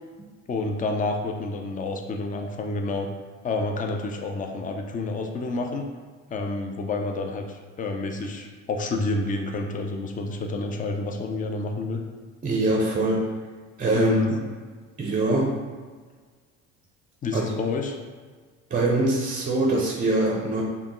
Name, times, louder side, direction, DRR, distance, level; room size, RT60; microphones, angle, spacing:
voice 1, 0.5-3.1 3.4-5.9 6.3-12.0 13.9-14.4 17.2-18.0, left 3 dB, 25° left, 4 dB, 0.5 m, -29 dB
voice 2, 12.4-13.3 13.8-14.4 15.0-15.6 17.3-17.4 18.7-20.6, right 2 dB, 25° right, -1 dB, 0.6 m, -23 dB
5.1 x 2.3 x 3.1 m, 1.5 s
hypercardioid pair, 70°, 36 cm